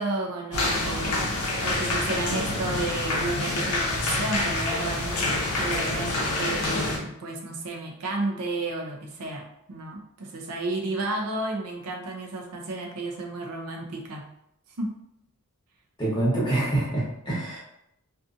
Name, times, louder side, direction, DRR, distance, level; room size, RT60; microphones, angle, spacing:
voice 1, 0.0-14.2 14.8-15.0, right 2 dB, 85° right, 1 dB, 0.5 m, -32 dB
sound 1, 0.5-7.0, left 2 dB, 70° left, 0.6 m, -27 dB
voice 2, 16.0-17.6, right 1 dB, 20° left, -6 dB, 1.0 m, -26 dB
2.6 x 2.4 x 2.4 m, 0.78 s
head